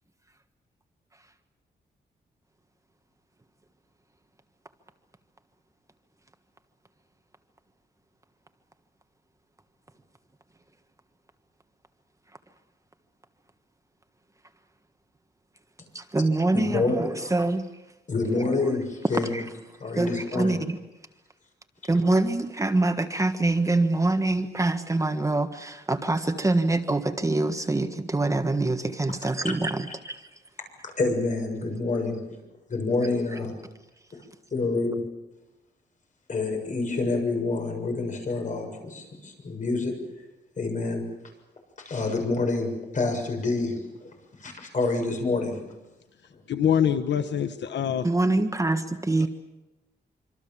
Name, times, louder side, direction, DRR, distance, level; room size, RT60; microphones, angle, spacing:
voice 1, 15.9-17.7 19.3-19.4 20.0-20.8 21.9-30.3 48.0-49.3, right 2 dB, 15° right, 1.5 m, -25 dB
voice 2, 16.5-17.3 18.1-19.4 19.8-20.6 31.0-32.3 32.7-33.5 34.5-35.0 36.3-40.0 40.6-41.1 41.8-44.1 44.4-45.6, left 3 dB, 45° left, 6.9 m, -27 dB
voice 3, 46.5-48.0, left 8 dB, 85° left, 1.2 m, -24 dB
26.0 x 26.0 x 7.3 m
wide cardioid pair, 135°, 18 cm